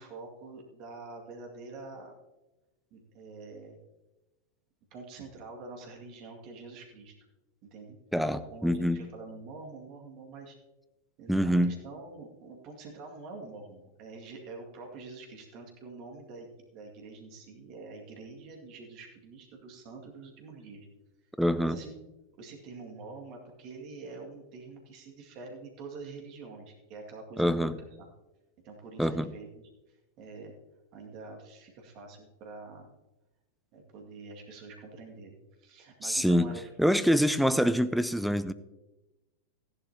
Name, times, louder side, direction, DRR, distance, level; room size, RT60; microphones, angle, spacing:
voice 1, 0.0-2.2 2.9-3.8 4.9-7.1 7.6-8.0 8.3-10.6 11.2-20.9 21.6-21.9 22.4-28.1 28.6-29.6 29.9-30.6 30.9-32.9 33.7-36.6, right 3 dB, 40° right, 2.1 m, -46 dB
voice 2, 8.1-9.0 11.3-11.7 21.4-21.8 27.4-27.7 29.0-29.3 36.0-38.5, equal, ahead, 0.5 m, -25 dB
14.5 x 10.5 x 2.9 m
figure-of-eight pair, 90°, 0 cm